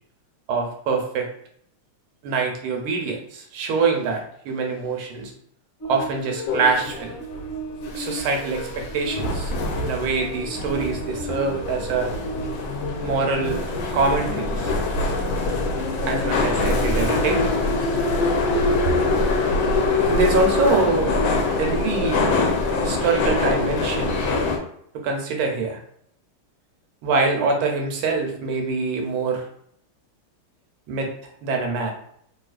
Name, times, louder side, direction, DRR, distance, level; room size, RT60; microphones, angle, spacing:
voice 1, 0.5-1.3 2.2-5.3 5.9-7.1 7.9-9.5 9.8-12.1 13.0-13.6 13.9-14.7 16.0-17.5 18.8-18.9 20.1-21.1 21.6-22.3 22.7-24.2 25.0-25.8 27.0-29.4 30.9-31.1 31.4-31.9, right 4 dB, 80° right, 2 dB, 1.5 m, -24 dB
sound 1, 5.8-13.6, right 1 dB, 40° left, 1.4 m, -36 dB
sound 2, 6.5-24.6, left 2 dB, 75° left, 1.3 m, -24 dB
3.4 x 2.6 x 2.4 m, 0.68 s
omnidirectional pair, 2.4 m